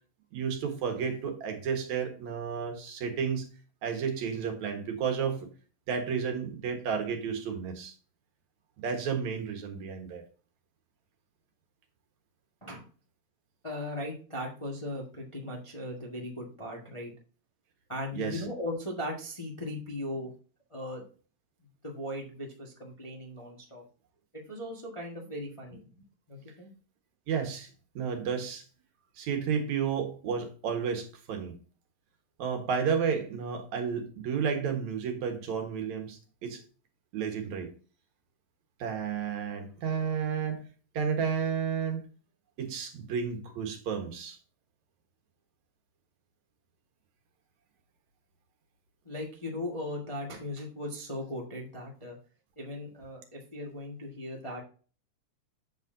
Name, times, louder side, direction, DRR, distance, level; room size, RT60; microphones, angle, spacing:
voice 1, 0.3-3.5 3.8-5.5 5.9-7.9 8.8-10.2 18.1-18.4 27.3-28.6 29.2-31.6 32.4-36.6 37.1-37.7 38.8-40.7 40.9-42.0 42.6-44.4, right 6 dB, 75° right, 4 dB, 2.8 m, -32 dB
voice 2, 13.6-17.1 17.9-20.3 20.7-21.1 21.8-23.8 24.3-25.9 26.3-26.7 49.0-52.2 52.6-54.6, left 1 dB, 15° left, -1 dB, 1.0 m, -38 dB
8.3 x 7.4 x 2.7 m, 0.38 s
omnidirectional pair, 3.3 m